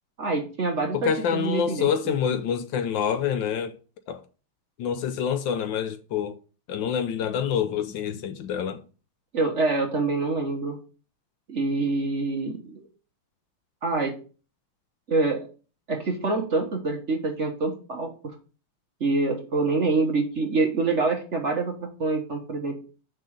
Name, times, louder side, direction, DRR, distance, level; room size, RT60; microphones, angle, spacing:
voice 1, 0.2-2.2 9.3-10.8 11.5-12.9 13.8-14.1 15.1-15.4 15.9-18.3 19.0-22.8, right 3 dB, 40° right, 1.2 m, -26 dB
voice 2, 0.9-3.7 4.1-4.2 4.8-6.4 6.7-8.8, left 8 dB, 75° left, 1.3 m, -27 dB
6.2 x 4.6 x 6.4 m
omnidirectional pair, 2.2 m